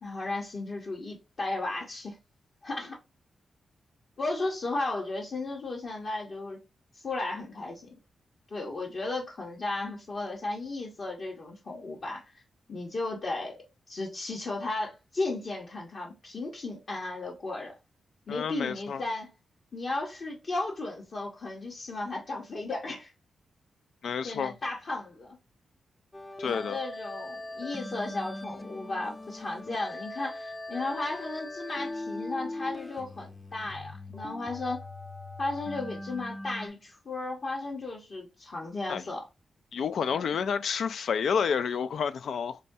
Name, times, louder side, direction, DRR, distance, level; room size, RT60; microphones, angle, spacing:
voice 1, 0.0-2.2 2.6-3.0 4.2-6.6 7.0-7.9 8.5-12.2 12.7-17.7 18.3-19.3 19.7-23.1 24.2-25.4 26.5-34.8 35.4-39.3 40.1-40.3, left 2 dB, 55° left, 0.9 m, -35 dB
voice 2, 18.3-19.0 24.0-24.5 26.4-26.8 38.9-39.0 39.7-42.6, left 6 dB, 75° left, 0.3 m, -29 dB
sound 1, 26.1-36.7, left 2 dB, 20° left, 0.6 m, -40 dB
5.0 x 2.3 x 2.7 m
cardioid pair, 70°, 0 cm